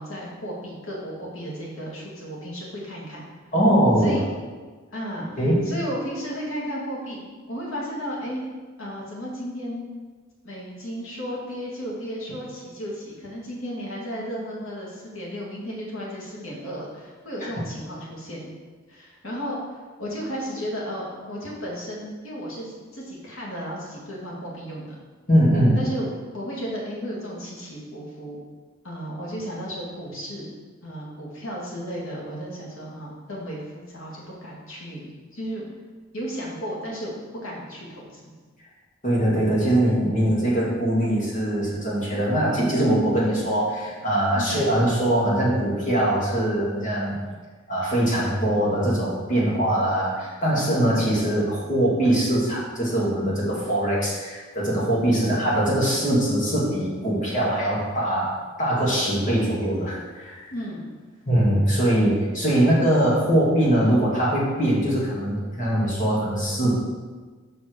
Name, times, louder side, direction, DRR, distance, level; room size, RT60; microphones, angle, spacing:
voice 1, 0.0-3.2 4.0-4.3 4.9-7.2 7.5-8.5 8.8-9.9 10.4-18.5 18.9-25.0 25.7-26.1 26.3-28.4 28.8-30.5 30.8-35.6 36.1-37.1 37.4-38.2 44.3-44.6 55.1-55.3 60.5-60.9, equal, 80° left, -4 dB, 2.3 m, -34 dB
voice 2, 3.5-4.1 5.4-5.6 25.3-25.8 39.0-47.1 47.7-58.3 58.6-60.5 61.3-66.8, right 1 dB, 40° left, -6 dB, 2.4 m, -22 dB
6.2 x 5.2 x 6.4 m, 1.4 s
head